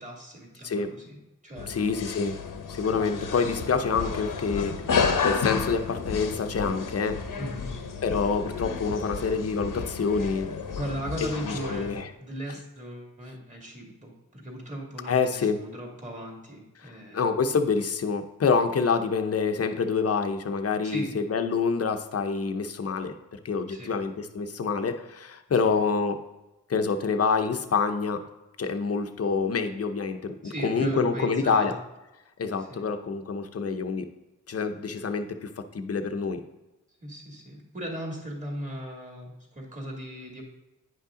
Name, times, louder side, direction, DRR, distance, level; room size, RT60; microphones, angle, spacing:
voice 1, 0.0-1.7 7.4-7.7 10.8-17.3 18.9-19.0 20.8-21.1 23.7-23.9 25.6-25.7 30.4-31.8 32.6-32.9 37.0-40.4, right 1 dB, 20° right, -1 dB, 2.4 m, -37 dB
sound 1, 1.6-12.0, left 5 dB, 75° left, 1.0 m, -31 dB
voice 2, 1.7-2.4 2.7-4.7 5.2-7.2 8.0-10.6 11.4-12.1 15.1-15.6 16.8-26.2 26.7-28.2 28.6-31.7 32.4-34.1 34.5-36.4, left 5 dB, 45° left, 7 dB, 0.8 m, -27 dB
9.3 x 5.6 x 3.8 m, 1.0 s
cardioid pair, 75°, 33 cm